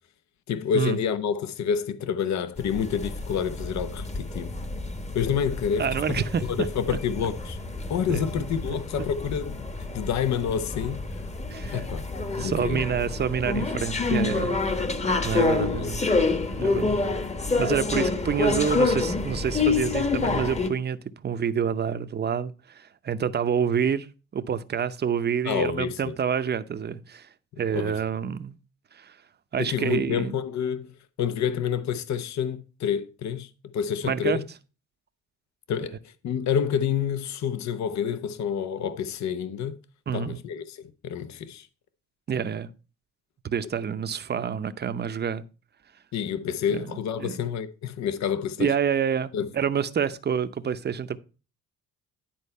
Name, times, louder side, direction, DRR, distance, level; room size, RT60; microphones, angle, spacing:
voice 1, 0.5-4.5 5.1-6.2 6.5-7.6 7.9-9.6 9.9-11.2 11.7-12.0 12.4-12.9 15.6-16.0 25.4-26.1 27.7-28.0 29.6-30.9 31.2-34.4 35.7-36.0 36.2-39.7 40.1-41.7 46.1-48.7 49.3-49.5, left 8 dB, 65° left, 0.8 m, -28 dB
sound 1, 2.6-20.7, left 3 dB, 20° left, 1.2 m, -28 dB
voice 2, 5.8-6.4 6.9-7.0 8.1-8.7 11.5-11.8 12.4-14.6 15.2-16.0 16.6-17.0 17.6-21.0 21.2-24.1 24.3-27.3 27.6-28.5 29.0-29.1 29.5-30.3 34.0-34.4 40.1-40.4 42.3-42.7 43.4-45.4 46.7-46.9 47.2-47.4 48.6-51.2, right 7 dB, 35° right, 0.7 m, -27 dB
10.5 x 4.4 x 5.4 m
cardioid pair, 90°, 30 cm